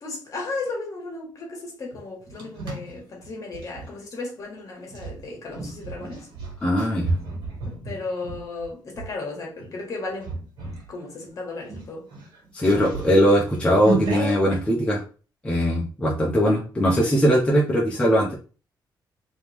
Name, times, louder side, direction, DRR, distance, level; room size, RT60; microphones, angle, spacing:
voice 1, 0.0-6.3 7.7-10.3 10.9-12.1, left 3 dB, 45° left, 1.6 m, -35 dB
sound 1, 1.9-3.9 4.9-9.1 9.6-9.8 10.2-10.9 11.2-11.3 11.6-14.6, right 3 dB, 85° right, 1.9 m, -32 dB
voice 2, 6.6-7.1 12.5-15.0 15.4-18.3, equal, 15° left, 0.9 m, -20 dB
3.4 x 3.1 x 3.5 m
cardioid pair, 145°, 8 cm